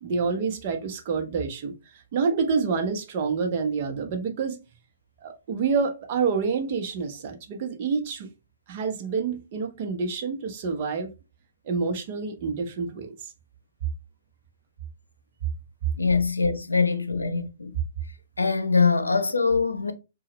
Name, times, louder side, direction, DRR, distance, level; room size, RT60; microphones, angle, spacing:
voice 1, 0.0-1.7 2.1-4.6 5.2-8.3 8.7-11.1 11.7-13.3, right 5 dB, 45° right, 0.9 m, -27 dB
voice 2, 15.9-17.7 18.4-19.9, left 4 dB, 85° left, 0.6 m, -23 dB
4.6 x 2.3 x 3.0 m
figure-of-eight pair, 120°, 0 cm